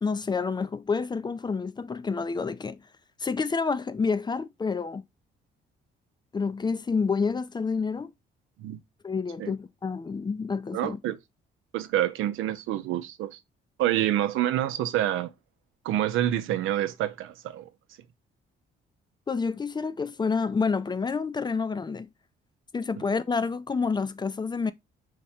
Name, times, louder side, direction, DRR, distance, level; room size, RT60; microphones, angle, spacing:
voice 1, 0.0-2.8 3.2-5.0 6.3-8.1 9.0-11.0 19.3-22.1 22.7-24.7, left 5 dB, 20° left, 0.4 m, -28 dB
voice 2, 10.7-11.2 11.7-13.4 13.8-15.3 15.8-17.7, right 12 dB, 85° right, 0.6 m, -27 dB
4.9 x 2.2 x 4.2 m
cardioid pair, 90°, 20 cm